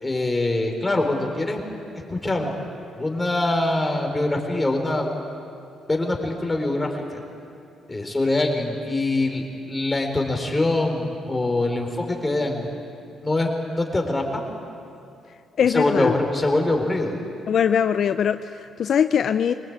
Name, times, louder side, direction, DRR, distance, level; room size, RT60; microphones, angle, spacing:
voice 1, 0.0-1.6 2.1-2.5 3.0-5.1 5.9-7.2 7.9-12.7 13.2-13.5 13.8-14.2 15.7-17.2, left 2 dB, 15° left, 2 dB, 4.2 m, -23 dB
voice 2, 15.6-16.2 17.5-19.5, left 8 dB, 60° left, 10 dB, 0.6 m, -21 dB
24.5 x 19.5 x 8.9 m, 2.6 s
cardioid pair, 90°, 0 cm